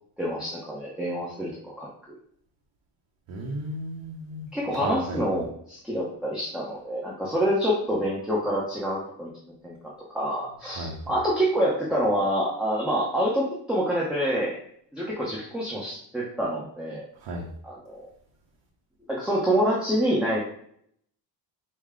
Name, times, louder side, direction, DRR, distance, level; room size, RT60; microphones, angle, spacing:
voice 1, 0.2-1.9 4.5-9.3 9.6-14.6 14.9-17.1 17.6-18.0 19.1-20.4, equal, ahead, -5 dB, 1.1 m, -27 dB
voice 2, 3.3-4.5 4.8-5.2 10.7-11.0 17.2-17.5, right 1 dB, 90° right, 0 dB, 0.8 m, -33 dB
5.0 x 2.4 x 3.7 m, 0.67 s
cardioid pair, 85°, 44 cm